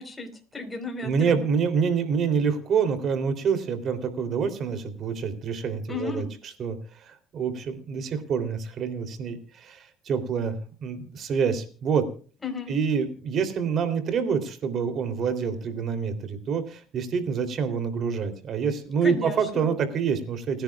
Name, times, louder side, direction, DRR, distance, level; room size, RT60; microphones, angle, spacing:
voice 1, 0.0-1.4 5.9-6.3 12.4-12.7 19.0-19.7, left 4 dB, 15° left, 5 dB, 4.5 m, -34 dB
voice 2, 1.0-6.2 6.6-12.1 12.7-20.6, right 6 dB, 45° right, 10 dB, 3.3 m, -27 dB
30.0 x 10.5 x 2.4 m, 0.39 s
cardioid pair, 110°, 0 cm